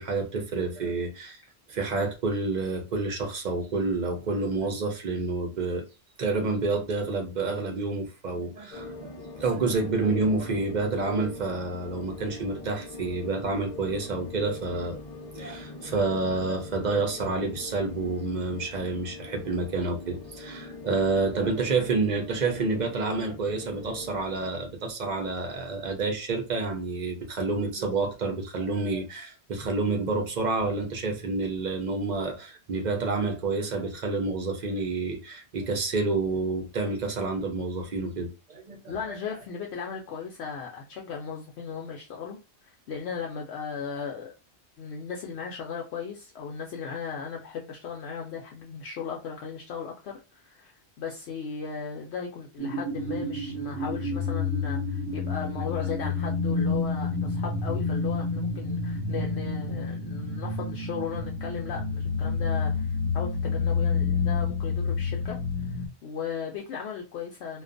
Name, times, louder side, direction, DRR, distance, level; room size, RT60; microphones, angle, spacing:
voice 1, 0.0-1.4 1.7-5.8 6.2-9.1 9.4-15.0 15.3-39.2, right 3 dB, 50° right, 0.6 m, -29 dB
sound 1, 8.7-24.5, left 3 dB, 40° left, 0.6 m, -42 dB
voice 2, 38.8-42.4 42.6-44.3 44.8-62.9 63.1-67.6, left 6 dB, 75° left, 0.8 m, -36 dB
sound 2, 52.6-65.9, left 4 dB, 85° right, 0.9 m, -29 dB
2.4 x 2.2 x 2.5 m
omnidirectional pair, 1.2 m